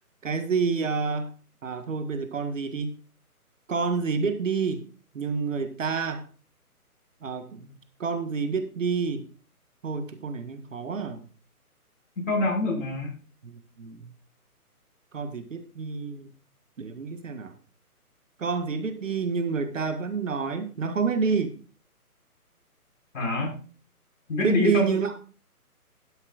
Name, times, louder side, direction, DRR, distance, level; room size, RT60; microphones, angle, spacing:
voice 1, 0.2-1.3 1.6-3.0 3.7-4.9 5.1-6.2 7.2-9.3 9.8-11.2 13.4-14.1 15.1-16.3 16.8-17.6 18.4-21.6 24.4-25.2, right 5 dB, 55° right, 8 dB, 1.7 m, -28 dB
voice 2, 12.2-13.1 23.1-23.5 24.3-25.0, left 2 dB, 55° left, 0 dB, 5.4 m, -25 dB
12.0 x 10.5 x 2.5 m, 0.38 s
figure-of-eight pair, 155°, 45 cm